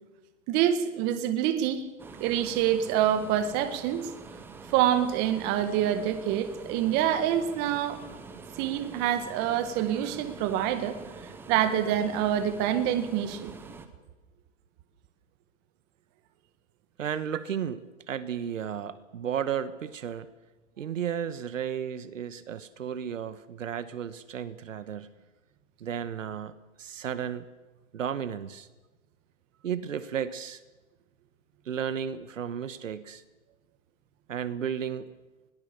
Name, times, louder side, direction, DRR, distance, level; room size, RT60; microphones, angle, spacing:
voice 1, 0.5-1.9 2.2-4.1 4.7-8.0 8.6-11.0 11.5-13.5, right 10 dB, 25° right, 10 dB, 1.7 m, -26 dB
sound 1, 2.0-13.9, right 4 dB, 5° right, 0.9 m, -45 dB
voice 2, 17.0-20.3 20.8-25.1 25.8-26.5 26.8-27.5 27.9-28.7 29.6-30.6 31.6-33.2 34.3-35.1, right 8 dB, 70° right, 14 dB, 1.4 m, -33 dB
21.0 x 19.0 x 6.8 m, 1.2 s
hypercardioid pair, 145°, 40 cm